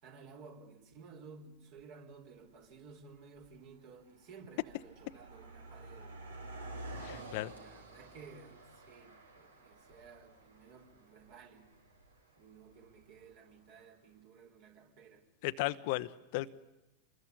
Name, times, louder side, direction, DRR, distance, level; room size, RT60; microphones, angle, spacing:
voice 1, 0.0-6.1 7.0-11.7 12.4-15.2, right 5 dB, 45° right, 4 dB, 4.1 m, -55 dB
Car passing by, 1.7-1.8 2.6-2.9 3.2-13.6, right 2 dB, 75° right, 4.0 m, -51 dB
voice 2, 7.0-7.5 15.4-16.6, left 18 dB, 50° left, 13 dB, 0.9 m, -36 dB
25.5 x 21.0 x 9.8 m, 1.0 s
figure-of-eight pair, 90°, 0 cm